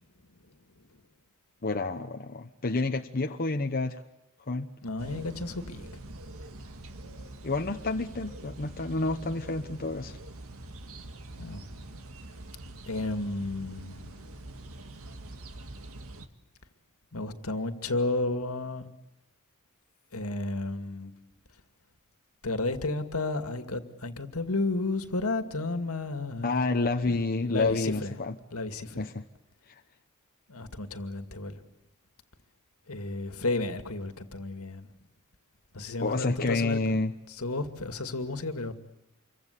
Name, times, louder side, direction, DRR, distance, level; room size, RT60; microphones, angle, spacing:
voice 1, 1.6-4.0 4.5-4.7 7.4-10.2 26.4-28.4 29.0-29.2 36.0-37.1, left 3 dB, 40° left, 4 dB, 1.1 m, -29 dB
voice 2, 4.8-5.9 11.4-11.6 12.9-14.3 17.1-18.8 20.1-21.1 22.4-26.6 27.1-28.2 28.5-29.1 30.5-31.6 32.9-34.9 35.7-37.0 37.3-38.7, left 2 dB, 70° left, 8 dB, 2.3 m, -32 dB
sound 1, 5.0-16.3, right 2 dB, 70° right, 2.1 m, -44 dB
27.5 x 24.0 x 8.4 m, 0.95 s
head